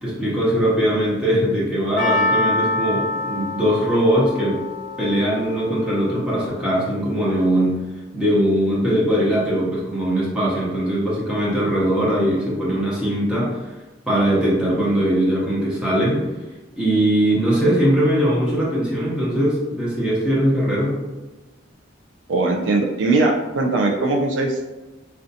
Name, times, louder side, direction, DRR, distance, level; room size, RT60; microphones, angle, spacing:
voice 1, 0.0-4.6 5.0-7.8 8.1-13.6 14.1-16.2 16.8-21.0, equal, 5° right, -7 dB, 0.6 m, -20 dB
Percussion, 2.0-6.3 6.6-6.7, left 2 dB, 60° left, 0.5 m, -26 dB
voice 2, 22.3-24.6, right 2 dB, 70° right, 1 dB, 0.3 m, -20 dB
2.5 x 2.2 x 2.6 m, 1.2 s
head